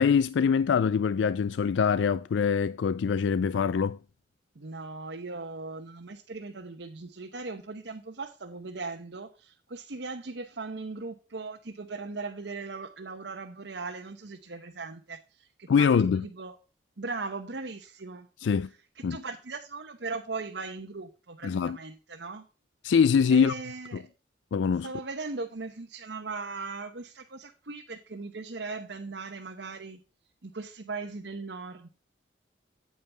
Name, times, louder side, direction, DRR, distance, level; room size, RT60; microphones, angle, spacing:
voice 1, 0.0-4.0 15.7-16.2 18.4-18.7 19.0-19.2 21.4-21.8 22.8-23.5 24.5-24.9, left 6 dB, 85° left, 0.4 m, -24 dB
voice 2, 4.5-16.6 17.0-18.3 19.0-22.4 23.3-24.1 24.8-30.0 30.4-31.9, right 3 dB, 75° right, 1.0 m, -38 dB
9.0 x 8.6 x 3.4 m
head